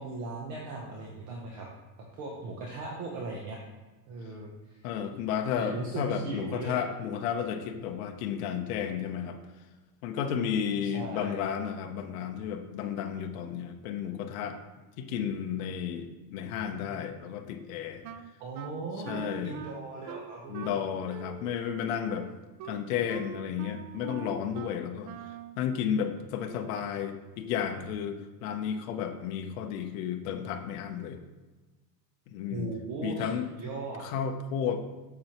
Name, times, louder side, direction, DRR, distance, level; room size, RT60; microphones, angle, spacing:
voice 1, 0.0-1.7 2.2-3.6 4.1-4.8 5.6-6.8 10.9-11.4 18.4-20.8 32.5-34.1, right 3 dB, 35° right, -1 dB, 0.8 m, -38 dB
voice 2, 4.8-9.4 10.0-14.6 15.0-18.0 19.1-19.5 20.5-22.3 22.6-25.1 25.6-31.2 32.3-32.7 33.0-33.5 34.0-34.8, left 8 dB, 55° left, 4 dB, 0.8 m, -32 dB
Wind instrument woodwind instrument, 18.0-25.6, right 8 dB, 80° right, 0.7 m, -44 dB
7.4 x 6.8 x 2.9 m, 1.2 s
supercardioid pair, 165°, 50 cm